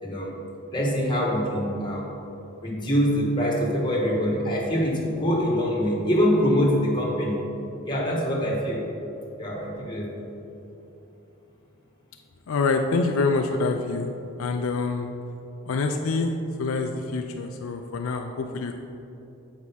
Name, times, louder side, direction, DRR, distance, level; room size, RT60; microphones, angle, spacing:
voice 1, 0.0-0.3 0.7-2.1 2.6-7.4 7.8-8.8 9.4-10.1, equal, 20° left, -3 dB, 1.2 m, -24 dB
voice 2, 12.5-14.1 14.4-15.1 15.6-16.3 16.6-18.7, left 3 dB, 70° left, 4 dB, 0.4 m, -26 dB
7.4 x 4.7 x 5.5 m, 2.9 s
head